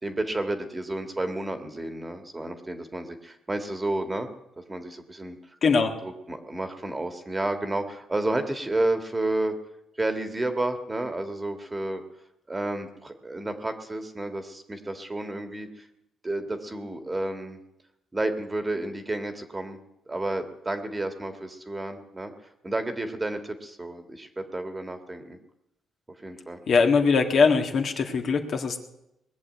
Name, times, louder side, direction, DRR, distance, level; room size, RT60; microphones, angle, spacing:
voice 1, 0.0-4.3 4.6-5.4 6.0-9.5 10.0-12.0 12.5-15.9 16.2-17.6 18.1-19.8 20.1-25.4 26.2-26.6, right 2 dB, 20° right, 7 dB, 1.7 m, -31 dB
voice 2, 5.6-5.9 26.7-28.8, left 5 dB, 55° left, 4 dB, 1.6 m, -21 dB
20.5 x 6.8 x 9.2 m, 0.85 s
cardioid pair, 90°, 0 cm